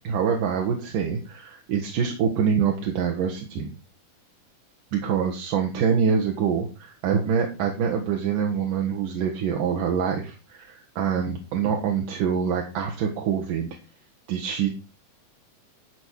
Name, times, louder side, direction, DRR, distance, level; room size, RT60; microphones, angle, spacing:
voice 1, 0.0-3.7 4.9-13.7 14.3-14.7, right 7 dB, 75° right, 1 dB, 3.0 m, -25 dB
12.5 x 4.7 x 6.3 m, 0.31 s
omnidirectional pair, 3.8 m